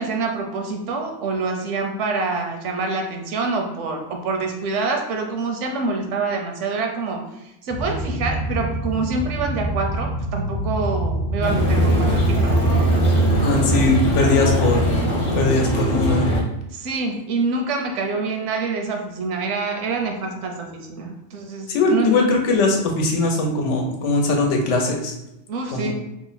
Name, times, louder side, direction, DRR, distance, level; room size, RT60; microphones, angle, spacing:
voice 1, 0.0-7.2 7.6-12.8 16.7-22.3 25.5-25.9, right 3 dB, 80° right, 3 dB, 0.9 m, -26 dB
sound 1, 7.7-14.9, right 1 dB, 20° left, 0.4 m, -27 dB
sound 2, 11.4-16.4, right 1 dB, 50° left, 1.0 m, -20 dB
voice 2, 13.4-14.9 15.3-16.3 21.7-25.1 25.7-25.9, left 3 dB, 75° left, 2 dB, 1.0 m, -20 dB
2.9 x 2.0 x 3.8 m, 0.88 s
omnidirectional pair, 1.2 m